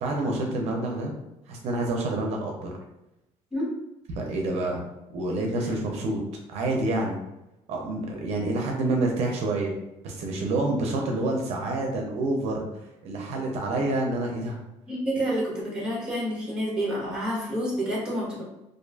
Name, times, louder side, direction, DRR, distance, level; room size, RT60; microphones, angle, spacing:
voice 1, 0.0-1.1 1.5-2.7 4.1-4.8 5.1-6.2 6.5-7.2 7.7-9.7 10.0-12.6 13.0-14.6, right 2 dB, 70° right, 0 dB, 0.5 m, -27 dB
voice 2, 14.9-18.4, equal, 10° right, -5 dB, 0.9 m, -28 dB
2.4 x 2.4 x 2.2 m, 0.91 s
cardioid pair, 130°, 11 cm